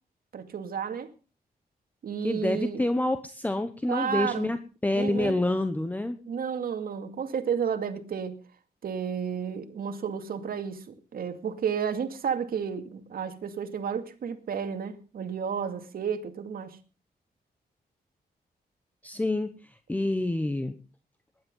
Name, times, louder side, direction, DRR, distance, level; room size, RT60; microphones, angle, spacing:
voice 1, 0.3-1.1 2.0-2.8 3.9-4.5 4.9-5.4 6.2-8.4 8.8-16.8, right 7 dB, 65° right, 2.3 m, -32 dB
voice 2, 2.2-4.6 4.8-6.2 19.0-19.5 19.9-20.7, left 2 dB, 10° left, 1.0 m, -27 dB
19.5 x 11.0 x 5.5 m
wide cardioid pair, 150°, 16 cm